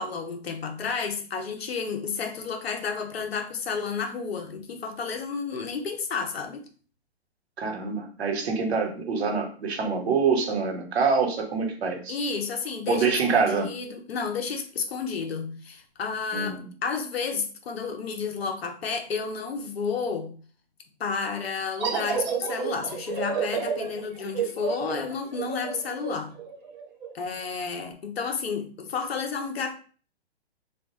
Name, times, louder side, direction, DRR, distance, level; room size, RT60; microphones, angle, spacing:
voice 1, 0.0-6.6 12.1-20.3 21.0-26.3 27.1-29.8, left 5 dB, 65° left, 0.9 m, -31 dB
voice 2, 7.6-12.2 12.9-13.7 16.3-16.7, right 5 dB, 70° right, 1.1 m, -25 dB
sound 1, 21.8-27.1, right 7 dB, 40° right, 0.9 m, -30 dB
3.3 x 2.4 x 3.0 m
hypercardioid pair, 135°, 32 cm